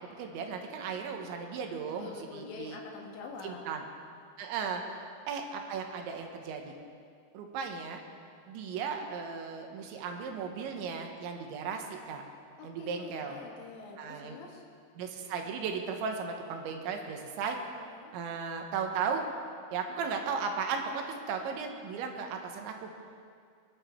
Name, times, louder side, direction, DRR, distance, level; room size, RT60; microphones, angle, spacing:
voice 1, 0.0-2.8 3.4-3.9 4.4-4.8 5.3-6.7 7.3-8.0 8.5-12.2 12.6-13.4 14.0-14.4 15.0-17.6 18.1-19.3 19.7-22.9, right 5 dB, 90° right, 3 dB, 3.6 m, -36 dB
voice 2, 2.0-3.6 4.7-4.8 12.6-14.7 17.8-18.1, left 4 dB, 80° left, 0 dB, 3.9 m, -46 dB
23.5 x 11.0 x 4.5 m, 2.2 s
omnidirectional pair, 5.2 m